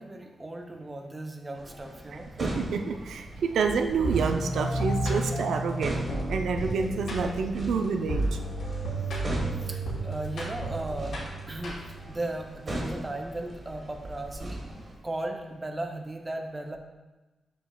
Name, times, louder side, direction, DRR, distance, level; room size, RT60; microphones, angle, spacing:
voice 1, 0.0-2.3 9.2-9.4 9.6-11.2 11.5-11.8 12.1-14.7 15.0-16.8, right 1 dB, 15° right, 3 dB, 0.5 m, -36 dB
sound 1, 1.5-15.0, right 1 dB, 35° right, 1.4 m, -39 dB
voice 2, 2.4-6.0 6.3-8.4, right 5 dB, 85° right, 5 dB, 0.4 m, -28 dB
sound 2, 4.0-12.1, right 1 dB, 75° left, 2.1 m, -32 dB
6.9 x 6.8 x 2.3 m, 1.1 s
wide cardioid pair, 170°, 0 cm